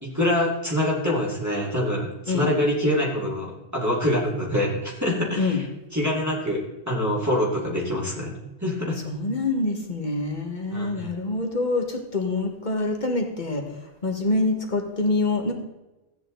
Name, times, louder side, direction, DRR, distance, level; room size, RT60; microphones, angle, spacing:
voice 1, 0.0-5.6 5.9-6.6 6.9-8.3 8.6-9.0 10.7-11.1, left 1 dB, 15° right, -5 dB, 2.4 m, -25 dB
voice 2, 9.0-13.6 14.0-15.5, left 2 dB, 45° left, 3 dB, 1.8 m, -25 dB
14.5 x 9.3 x 3.9 m, 1.0 s
omnidirectional pair, 1.1 m